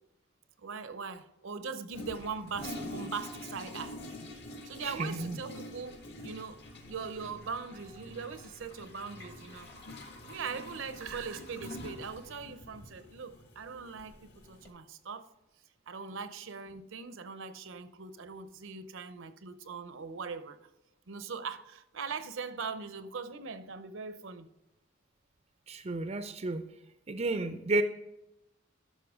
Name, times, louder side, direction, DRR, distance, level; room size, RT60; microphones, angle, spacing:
voice 1, 0.6-4.0 4.6-9.7 10.3-15.3 15.9-20.7 21.1-24.5, right 5 dB, 70° right, 0.7 m, -41 dB
Toilet flush, 1.9-14.7, left 1 dB, 55° left, 1.6 m, -46 dB
voice 2, 4.8-5.4 25.7-26.6 27.1-27.8, right 2 dB, 30° right, 0.5 m, -32 dB
13.0 x 5.7 x 3.6 m
head